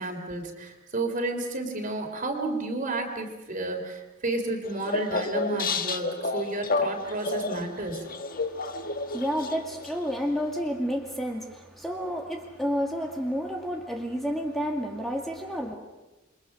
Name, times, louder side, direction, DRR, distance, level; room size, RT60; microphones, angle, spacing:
voice 1, 0.0-8.1, right 2 dB, 45° right, 4 dB, 3.5 m, -31 dB
sound 1, 4.6-10.2, left 3 dB, 45° left, 1.5 m, -30 dB
voice 2, 8.4-15.7, equal, ahead, 1 dB, 2.2 m, -31 dB
28.5 x 23.5 x 6.2 m, 1.0 s
head